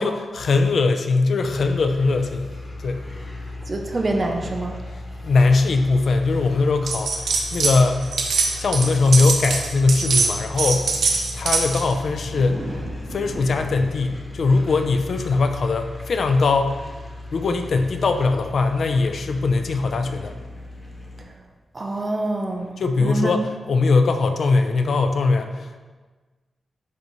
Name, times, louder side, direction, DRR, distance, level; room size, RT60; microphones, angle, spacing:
voice 1, 0.0-2.5 2.8-3.0 5.2-8.1 8.6-10.9 11.3-12.7 13.1-16.7 17.3-20.4 22.8-25.8, left 3 dB, 60° left, 6 dB, 0.5 m, -20 dB
sound 1, 1.4-21.2, left 2 dB, 20° left, 1.0 m, -37 dB
voice 2, 3.7-4.7 21.7-22.7 23.0-23.3, right 2 dB, 30° right, 3 dB, 0.6 m, -25 dB
sound 2, 6.9-7.8 8.0-11.9, right 4 dB, 85° right, 0.9 m, -23 dB
sound 3, 7.4-8.5 9.0-9.3 10.3-10.4 11.5-14.3, right 1 dB, 65° right, 1.3 m, -38 dB
10.5 x 4.0 x 3.1 m, 1.3 s
wide cardioid pair, 150°, 0 cm